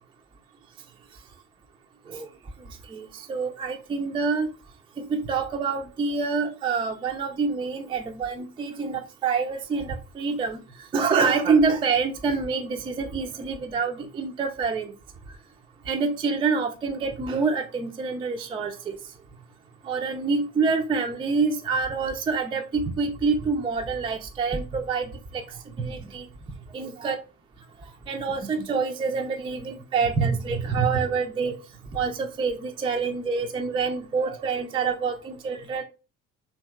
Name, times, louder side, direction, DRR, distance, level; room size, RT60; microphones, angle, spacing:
voice 1, 2.9-4.5 5.0-10.6 10.9-14.9 15.9-19.0 19.8-25.4 25.8-26.3 26.7-27.2 28.1-31.5 31.9-35.8, right 4 dB, 15° right, 0.3 m, -26 dB
2.8 x 2.7 x 2.2 m
hypercardioid pair, 55°, 42 cm